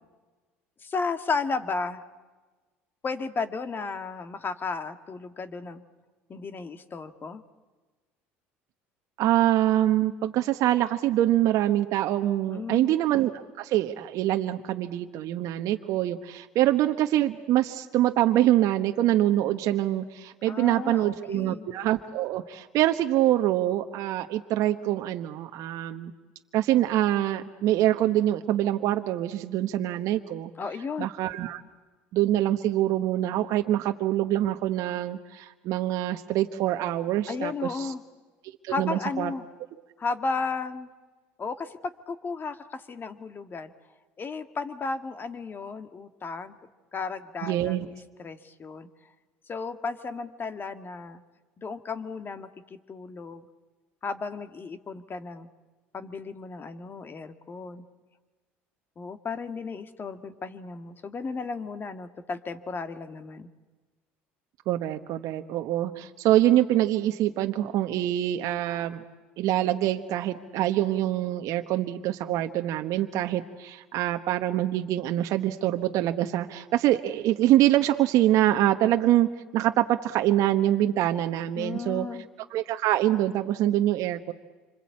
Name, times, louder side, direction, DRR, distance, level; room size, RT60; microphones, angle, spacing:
voice 1, 0.8-2.0 3.0-5.8 6.3-7.4 12.5-12.9 20.5-21.7 30.6-31.1 37.3-38.0 38.7-39.4 40.0-40.9 41.4-41.8 42.1-43.7 44.2-46.6 46.9-47.9 48.2-48.9 49.5-51.2 51.6-53.5 54.0-55.5 55.9-57.8 59.0-63.5 81.5-82.3, left 4 dB, 35° left, 9 dB, 1.8 m, -34 dB
voice 2, 9.2-26.1 26.5-30.5 31.0-31.6 32.1-37.9 38.6-39.3 47.4-47.9 64.7-69.0 69.4-82.1 82.5-84.3, right 13 dB, 60° right, 6 dB, 1.1 m, -25 dB
26.5 x 26.0 x 8.6 m, 1.3 s
hypercardioid pair, 75°, 6 cm